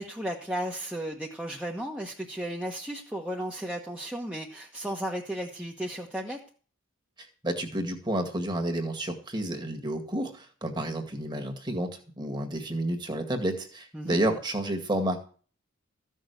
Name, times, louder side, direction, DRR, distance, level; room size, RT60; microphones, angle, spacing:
voice 1, 0.0-6.4 13.9-14.2, right 1 dB, 5° right, -1 dB, 1.3 m, -34 dB
voice 2, 7.4-11.9 12.2-15.2, right 1 dB, 20° right, 5 dB, 2.0 m, -30 dB
14.5 x 6.4 x 8.2 m, 0.42 s
head